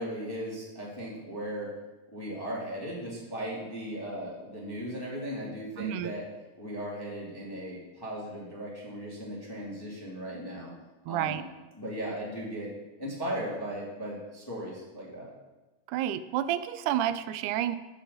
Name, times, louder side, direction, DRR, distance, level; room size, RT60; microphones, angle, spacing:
voice 1, 0.0-1.7 2.1-6.2 6.6-10.7 11.1-11.4 11.8-12.7 13.0-15.3, equal, 10° left, -5 dB, 1.7 m, -37 dB
voice 2, 5.8-6.1 11.1-11.4 15.9-17.8, right 11 dB, 80° right, 13 dB, 1.9 m, -30 dB
9.0 x 5.7 x 6.8 m, 1.1 s
omnidirectional pair, 3.8 m